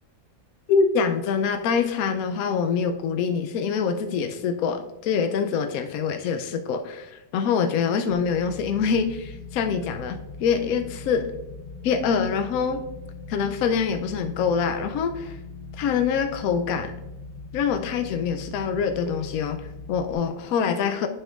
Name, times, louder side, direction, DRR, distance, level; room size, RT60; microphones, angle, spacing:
voice 1, 0.7-11.3 11.8-12.8 13.3-15.4 15.8-16.9 17.5-21.1, left 6 dB, 80° left, 7 dB, 1.0 m, -25 dB
sound 1, 8.1-20.1, left 3 dB, 60° left, 1.3 m, -40 dB
9.7 x 5.7 x 2.4 m, 0.96 s
omnidirectional pair, 1.5 m